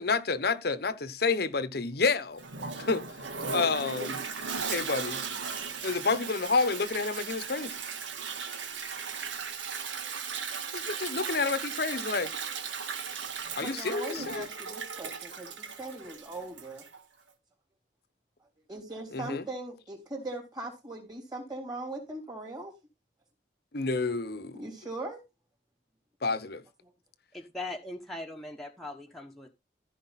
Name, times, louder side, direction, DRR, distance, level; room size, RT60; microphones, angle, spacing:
voice 1, 0.0-2.4 2.8-3.0 3.5-4.2 4.7-5.2 5.8-7.8 10.7-12.3 13.5-14.5 19.1-19.5 23.7-24.6 26.2-26.6, left 4 dB, 55° left, 0.9 m, -29 dB
Toilet flush, 2.4-17.0, right 5 dB, 85° right, 1.6 m, -37 dB
voice 2, 13.6-16.8 18.7-22.7 24.5-25.2, right 2 dB, 20° right, 3.5 m, -40 dB
voice 3, 27.3-29.5, left 2 dB, ahead, 1.2 m, -40 dB
14.5 x 5.0 x 4.1 m
head